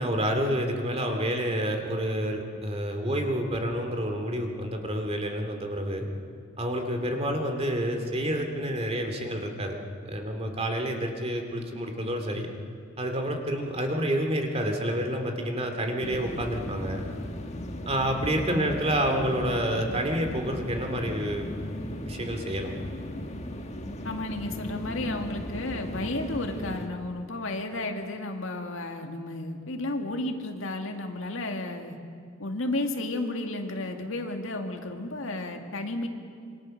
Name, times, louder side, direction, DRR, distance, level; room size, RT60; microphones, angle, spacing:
voice 1, 0.0-6.1 6.6-9.7 10.0-12.5 13.0-17.0 17.9-21.5 22.1-22.7, equal, 30° right, 4 dB, 2.6 m, -29 dB
sound 1, 16.0-26.9, left 1 dB, 35° left, 1.5 m, -37 dB
voice 2, 24.0-32.0 32.4-36.1, left 2 dB, 65° left, 4 dB, 2.1 m, -33 dB
26.5 x 24.0 x 6.6 m, 2.2 s
head